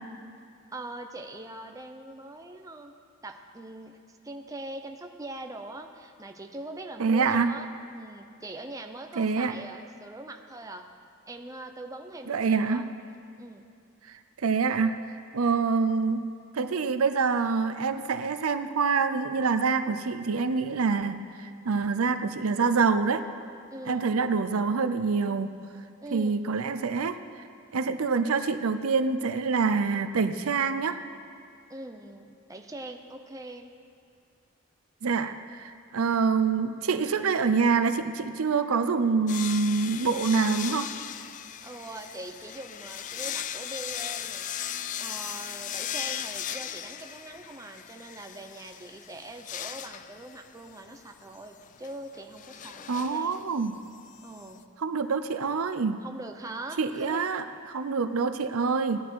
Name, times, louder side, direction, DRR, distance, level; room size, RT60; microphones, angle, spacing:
voice 1, 0.7-2.9 3.2-4.0 4.2-7.7 7.9-10.9 11.3-12.9 13.4-13.7 23.7-24.1 26.0-26.4 31.7-33.7 41.6-53.4 54.2-54.7 56.0-57.2, right 2 dB, 15° right, 4 dB, 0.6 m, -42 dB
voice 2, 7.0-7.5 9.2-9.5 12.3-12.8 14.1-14.9 15.3-16.2 16.5-23.2 23.9-25.5 26.1-27.2 27.7-31.0 35.0-40.9 52.9-53.7 54.8-56.0 56.8-59.0, right 5 dB, 90° right, 10 dB, 0.6 m, -26 dB
sound 1, 39.3-54.6, left 10 dB, 35° left, 0.3 m, -38 dB
16.5 x 11.0 x 4.6 m, 2.4 s
head